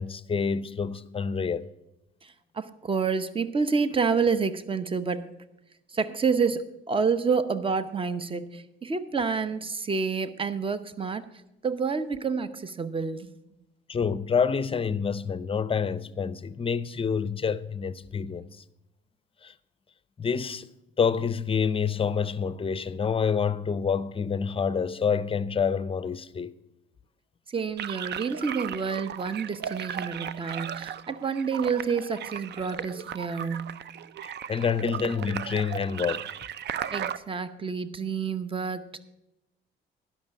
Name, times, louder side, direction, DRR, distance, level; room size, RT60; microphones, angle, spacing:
voice 1, 0.0-1.7 13.9-18.6 19.4-19.5 20.2-20.7 21.0-26.5 34.2-36.2, left 6 dB, 30° left, 0.5 m, -27 dB
voice 2, 2.2-5.3 5.9-11.2 11.6-13.3 27.5-33.8 36.9-39.0, right 5 dB, 25° right, 0.8 m, -28 dB
sound 1, 27.8-37.2, right 9 dB, 60° right, 0.5 m, -36 dB
11.5 x 5.9 x 8.3 m
cardioid pair, 90°, 20 cm